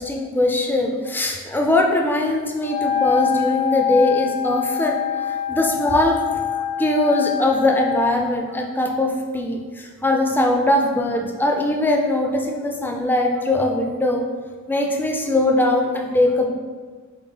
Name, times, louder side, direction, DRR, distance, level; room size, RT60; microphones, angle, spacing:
voice 1, 0.0-6.2 6.7-14.2 14.7-16.5, left 1 dB, 10° left, 1 dB, 0.4 m, -21 dB
Wind instrument woodwind instrument, 2.6-8.2, left 9 dB, 70° left, 0.6 m, -25 dB
3.9 x 3.5 x 3.7 m, 1.5 s
head